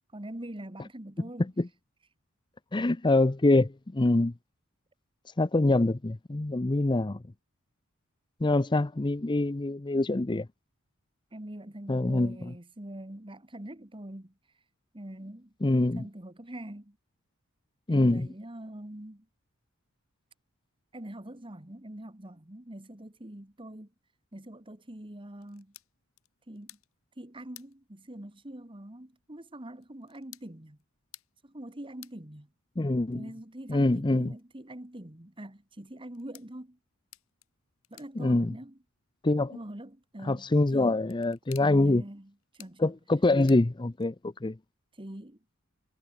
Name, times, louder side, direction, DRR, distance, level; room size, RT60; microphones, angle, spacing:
voice 1, 0.1-1.5 11.3-14.3 14.9-15.5 16.0-17.0 17.9-19.3 20.9-23.9 24.3-25.7 26.5-26.8 27.2-30.8 31.4-32.5 33.1-36.8 37.9-38.8 39.4-40.5 40.7-41.0 41.6-42.9 45.0-45.4, right 1 dB, 25° right, 1.8 m, -44 dB
voice 2, 2.7-4.3 5.4-7.2 8.4-10.5 11.9-12.4 15.6-16.1 17.9-18.3 32.8-33.2 33.7-34.3 38.2-38.5 39.2-39.6 40.2-42.0 42.8-44.6, left 2 dB, 20° left, 0.6 m, -25 dB
sound 1, 25.4-44.4, left 15 dB, 75° left, 4.4 m, -59 dB
head